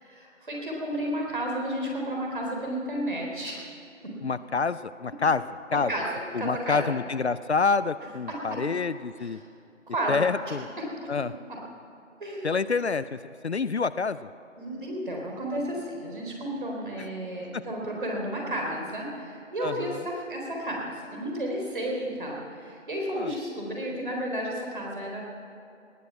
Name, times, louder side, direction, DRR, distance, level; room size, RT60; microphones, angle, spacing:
voice 1, 0.0-3.6 4.0-4.2 5.9-6.1 6.4-6.8 9.2-9.3 9.9-10.2 11.0-11.1 12.2-12.5 14.6-25.2, right 1 dB, 40° right, -1 dB, 3.8 m, -32 dB
voice 2, 4.2-5.4 5.7-5.9 6.3-9.4 10.1-10.7 11.1-11.3 12.4-13.2 13.4-14.2 17.0-17.1 17.5-17.6 19.6-20.0 23.1-23.3, left 4 dB, 60° left, 15 dB, 0.5 m, -27 dB
19.0 x 9.6 x 7.6 m, 2.7 s
figure-of-eight pair, 175°, 37 cm